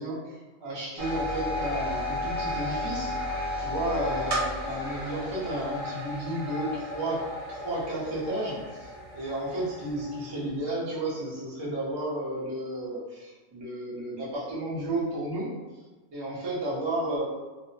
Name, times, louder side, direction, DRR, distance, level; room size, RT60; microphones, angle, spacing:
voice 1, 0.0-3.2 3.6-15.5 16.1-17.2, right 1 dB, 35° right, -7 dB, 0.4 m, -32 dB
sound 1, 1.0-10.6, left 1 dB, 65° right, 0.9 m, -33 dB
2.5 x 2.0 x 2.6 m, 1.2 s
omnidirectional pair, 1.3 m